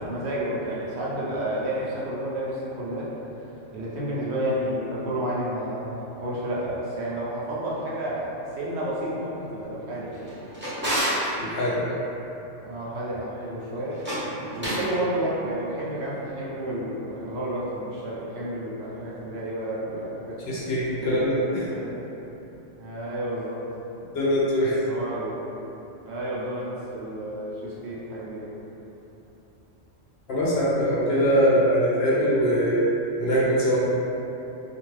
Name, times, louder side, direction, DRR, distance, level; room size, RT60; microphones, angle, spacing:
voice 1, 0.0-3.1 3.7-10.3 12.7-14.0 14.6-20.4 21.0-21.2 21.7-22.0 22.8-23.6 24.9-25.5 26.1-28.5, right 1 dB, 70° right, -7 dB, 0.8 m, -31 dB
Drawer open or close, 10.1-11.3 13.9-14.9, equal, 10° right, 0.6 m, -29 dB
voice 2, 11.4-12.0 20.5-21.7 24.1-24.9 30.3-32.9 33.2-33.8, equal, 65° left, -7 dB, 0.8 m, -22 dB
2.5 x 2.3 x 3.1 m, 3.0 s
omnidirectional pair, 1.3 m